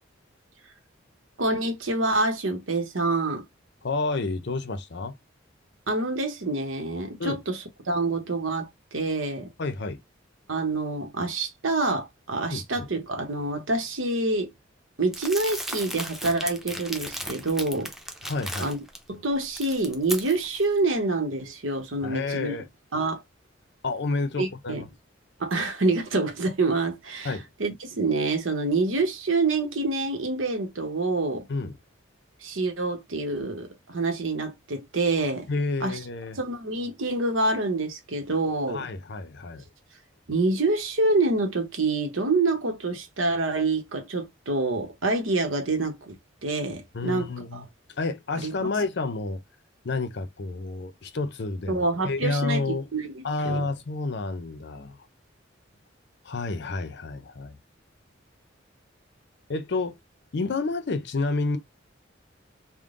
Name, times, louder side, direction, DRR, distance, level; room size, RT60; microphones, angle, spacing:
voice 1, 1.4-3.4 5.9-7.6 7.9-9.5 10.5-14.5 15.0-17.9 18.6-18.8 19.1-22.5 22.9-23.2 24.4-24.8 25.4-31.5 32.4-35.5 35.8-36.0 36.3-38.9 40.3-46.2 46.4-47.6 48.4-48.5 51.7-53.1 53.4-53.6, right 2 dB, 90° right, 1.0 m, -27 dB
voice 2, 3.8-5.1 7.2-7.4 9.6-10.0 12.5-12.9 18.2-18.7 22.0-22.6 23.8-24.9 27.2-27.4 31.5-31.7 35.5-36.4 38.7-39.6 46.9-47.7 48.0-49.4 49.8-52.9 53.2-55.0 56.2-57.6 59.5-60.0 60.3-61.6, left 3 dB, 60° left, 0.6 m, -30 dB
Crumpling crinkling, 15.1-19.0 19.4-20.6, equal, ahead, 0.6 m, -36 dB
3.7 x 2.1 x 3.7 m
head